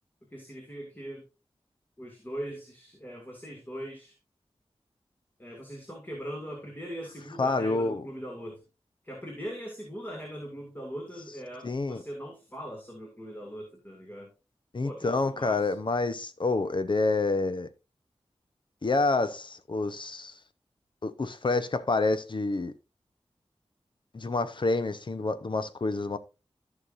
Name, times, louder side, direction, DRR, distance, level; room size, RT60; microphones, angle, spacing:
voice 1, 0.3-1.3 2.0-4.2 5.4-8.6 9.0-14.3 14.8-15.7, equal, 20° left, 2.4 m, -40 dB
voice 2, 7.4-8.1 11.6-12.0 14.7-17.7 18.8-20.3 21.0-22.7 24.1-26.2, left 3 dB, 50° left, 0.9 m, -28 dB
14.0 x 5.9 x 2.6 m
wide cardioid pair, 80°, 10 cm